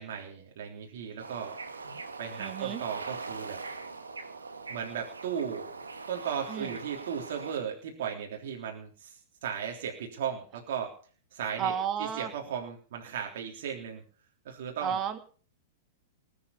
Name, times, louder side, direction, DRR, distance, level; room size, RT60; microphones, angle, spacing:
voice 1, 0.0-1.6 2.2-3.6 4.7-5.7 6.1-11.0 11.3-11.7 12.0-14.0 14.5-15.0, right 8 dB, 60° right, 1 dB, 3.5 m, -36 dB
Bird / Ocean, 1.2-7.6, right 4 dB, 90° right, 2.0 m, -41 dB
voice 2, 2.4-2.8 6.5-6.7 11.6-12.3 14.8-15.2, right 8 dB, 35° right, 8 dB, 2.5 m, -32 dB
19.5 x 8.7 x 6.9 m, 0.43 s
hypercardioid pair, 105°, 0 cm